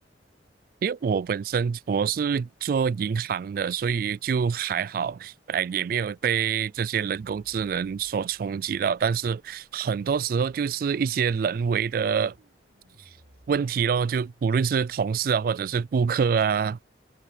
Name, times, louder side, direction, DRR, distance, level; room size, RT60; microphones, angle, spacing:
voice 1, 0.8-12.3 13.5-16.8, right 6 dB, 55° right, 0.3 m, -26 dB
sound 1, 7.1-14.7, equal, 90° right, 4.3 m, -60 dB
head